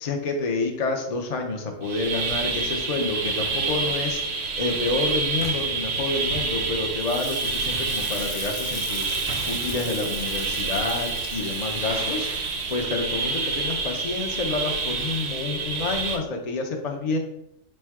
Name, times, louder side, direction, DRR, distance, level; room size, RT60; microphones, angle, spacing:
voice 1, 0.0-17.2, left 3 dB, 50° left, 2 dB, 0.5 m, -29 dB
sound 1, 1.8-16.2, right 4 dB, 65° right, 0.8 m, -28 dB
Frying (food), 5.3-15.0, left 6 dB, 75° left, 0.9 m, -41 dB
sound 2, 5.4-13.4, right 1 dB, 10° right, 0.3 m, -43 dB
4.2 x 2.2 x 4.6 m, 0.79 s
omnidirectional pair, 1.4 m